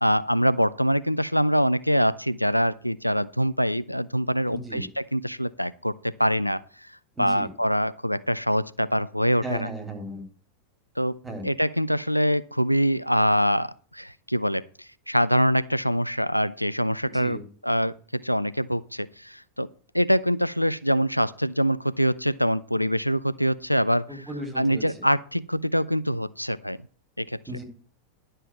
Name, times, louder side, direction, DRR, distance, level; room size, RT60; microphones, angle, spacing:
voice 1, 0.0-6.6 7.2-9.7 11.0-11.2 11.4-17.4 17.6-19.7 19.9-24.3 24.6-26.8 27.2-27.4, equal, 90° left, 16 dB, 0.4 m, -24 dB
voice 2, 4.5-4.9 7.2-7.5 9.4-10.2 11.2-11.5 17.0-17.4 24.1-25.1 27.5-27.6, right 1 dB, 15° right, 3 dB, 3.4 m, -36 dB
11.0 x 5.5 x 7.4 m, 0.42 s
figure-of-eight pair, 90°, 0 cm